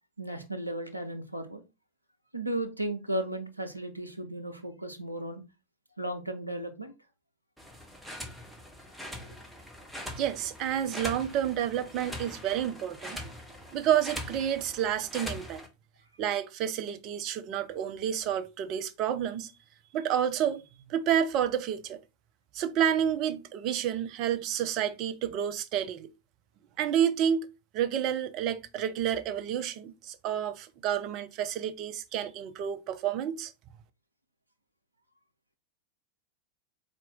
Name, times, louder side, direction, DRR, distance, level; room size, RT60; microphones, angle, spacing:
voice 1, 0.2-1.6 2.3-5.4 6.0-6.9, right 1 dB, 90° right, 0.6 m, -35 dB
sound 1, 7.6-15.7, equal, ahead, 0.8 m, -42 dB
voice 2, 10.2-13.3 13.7-15.6 16.2-19.5 19.9-20.6 20.9-22.0 22.5-26.1 26.8-33.5, right 9 dB, 40° right, 0.5 m, -30 dB
4.2 x 2.5 x 3.6 m
figure-of-eight pair, 90°, 0 cm